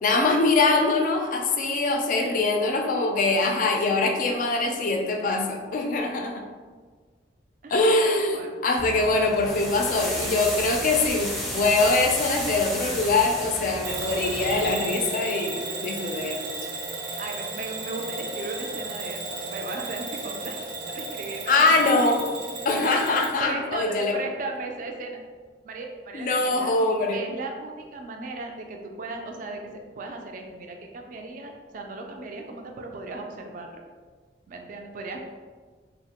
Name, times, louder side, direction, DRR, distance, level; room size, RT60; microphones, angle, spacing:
voice 1, 0.0-6.4 7.7-16.6 21.5-22.2 22.7-24.2 26.1-27.2, left 3 dB, 45° left, 3 dB, 0.3 m, -23 dB
voice 2, 8.3-8.8 17.2-20.6 20.9-22.2 22.8-25.2 25.6-26.7 27.1-33.8 34.5-35.2, right 3 dB, 45° right, 3 dB, 0.3 m, -37 dB
sound 1, 8.8-14.7, equal, ahead, 0.6 m, -32 dB
Bell / Alarm, 13.8-23.4, right 3 dB, 80° right, 0.6 m, -34 dB
2.9 x 2.0 x 2.8 m, 1.5 s
head